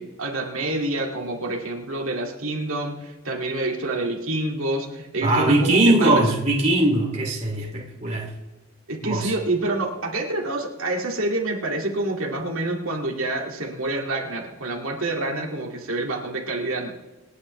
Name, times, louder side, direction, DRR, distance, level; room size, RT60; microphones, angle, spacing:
voice 1, 0.0-6.2 8.9-16.9, right 2 dB, 65° right, -1 dB, 2.2 m, -27 dB
voice 2, 5.2-8.3 9.0-9.3, right 2 dB, 30° right, -2 dB, 2.5 m, -20 dB
27.5 x 9.6 x 3.2 m, 1.1 s
head